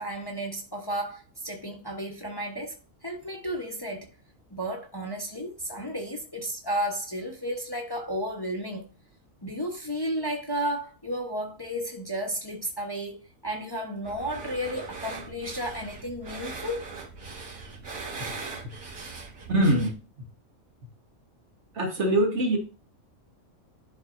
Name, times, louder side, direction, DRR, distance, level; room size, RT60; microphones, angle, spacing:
voice 1, 0.0-2.8 3.0-4.1 4.5-8.8 9.4-13.2 13.4-16.9, equal, 20° left, 1.0 m, -33 dB
sound 1, 14.0-19.9, right 4 dB, 85° right, 2.1 m, -40 dB
voice 2, 19.5-19.9 21.7-22.6, right 1 dB, 60° right, 1.6 m, -23 dB
11.5 x 4.2 x 2.6 m
omnidirectional pair, 1.4 m